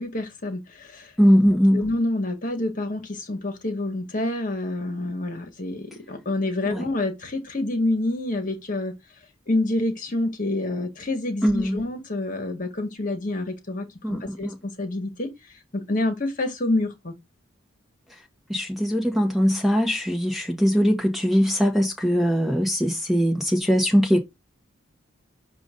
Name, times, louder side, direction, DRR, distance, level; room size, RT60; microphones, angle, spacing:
voice 1, 0.0-1.1 1.4-8.9 9.5-15.3 15.7-17.1, left 2 dB, 40° left, 1.5 m, -27 dB
voice 2, 1.2-1.8 6.7-6.9 11.4-11.8 14.0-14.5 18.5-24.2, equal, ahead, 1.2 m, -21 dB
7.0 x 2.7 x 5.1 m
head